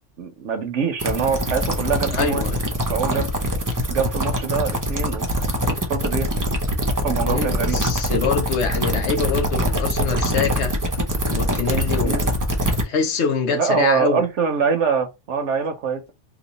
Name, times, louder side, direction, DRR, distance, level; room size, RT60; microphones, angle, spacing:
voice 1, 0.2-2.4 2.9-3.3 3.9-5.3 5.6-6.3 7.0-7.8 12.0-12.3 13.5-16.1, right 6 dB, 80° right, 1.0 m, -24 dB
sound 1, 1.0-12.8, equal, 25° right, 0.5 m, -23 dB
voice 2, 2.1-2.6 7.2-10.7 11.2-12.3 12.8-14.2, left 5 dB, 70° left, 1.0 m, -24 dB
3.0 x 2.3 x 3.9 m
omnidirectional pair, 1.2 m